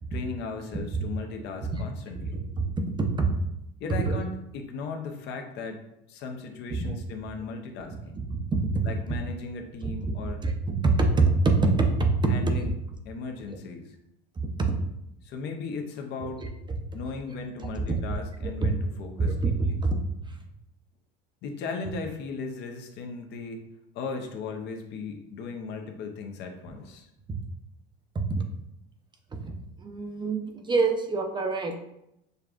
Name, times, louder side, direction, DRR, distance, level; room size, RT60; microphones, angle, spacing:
voice 1, 0.1-2.4 3.8-5.8 6.1-8.2 8.8-10.4 12.3-12.7 13.1-14.0 15.2-16.4 16.9-19.8 21.4-23.7 23.9-27.1, left 4 dB, 60° left, 4 dB, 0.7 m, -37 dB
voice 2, 1.4-1.8 2.3-2.5 3.1-3.3 4.0-4.1 6.7-6.9 8.3-8.4 9.8-10.1 10.4-10.5 10.8-11.3 11.6-11.9 14.6-14.7 17.6-17.7 18.4-18.5 19.2-19.5 19.8-20.0 28.1-28.4 29.4-29.5 29.8-31.8, right 3 dB, 20° right, 4 dB, 0.6 m, -25 dB
6.6 x 2.3 x 2.4 m, 0.82 s
supercardioid pair, 95°, 20 cm